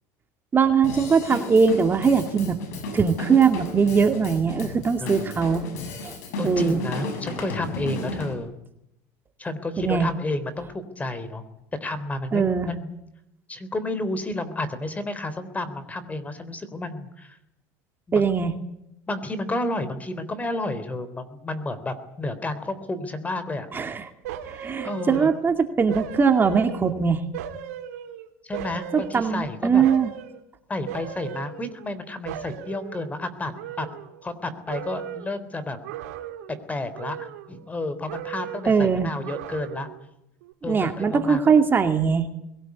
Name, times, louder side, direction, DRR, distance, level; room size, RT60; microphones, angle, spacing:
voice 1, 0.5-2.6 2.9-5.6 6.0-6.2 6.4-6.8 9.8-10.1 12.3-12.7 18.1-18.5 23.7-24.1 24.5-27.2 28.9-30.1 38.7-39.1 40.7-42.3, right 6 dB, 25° right, 6 dB, 2.4 m, -21 dB
Drum kit / Drum, 0.8-8.3, left 2 dB, 85° left, 6.5 m, -34 dB
voice 2, 5.0-5.4 6.4-8.5 9.4-11.4 11.8-12.9 13.5-17.4 18.1-18.2 19.1-23.7 24.8-25.3 28.4-29.8 30.7-33.9 34.2-35.8 36.7-39.9 40.6-41.5, left 2 dB, 15° left, 13 dB, 3.5 m, -31 dB
sound 1, 24.2-25.5 25.9-27.0 27.3-29.4 29.8-30.4 30.9-32.0 32.2-34.4 34.7-35.4 35.8-36.6 36.9-37.8 38.1-38.8 39.2-40.0 40.4-40.5, right 10 dB, 85° right, 2.6 m, -37 dB
22.0 x 18.0 x 9.6 m, 0.82 s
supercardioid pair, 105°, 8 cm